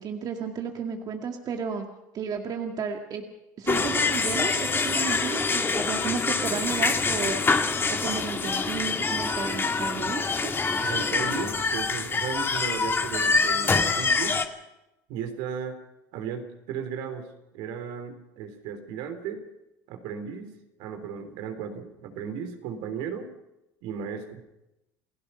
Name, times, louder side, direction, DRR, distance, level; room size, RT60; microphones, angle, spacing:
voice 1, 0.0-1.8 2.1-3.2 3.6-7.4 7.9-10.5, right 6 dB, 45° right, 3 dB, 2.1 m, -33 dB
sound 1, 3.7-14.5, left 4 dB, 25° left, 2.0 m, -25 dB
voice 2, 10.8-14.4 15.1-15.8 16.1-19.4 19.9-20.5 20.8-23.3 23.8-24.4, right 7 dB, 70° right, 6 dB, 3.5 m, -35 dB
29.0 x 16.5 x 5.7 m, 0.92 s
hypercardioid pair, 85°, 9 cm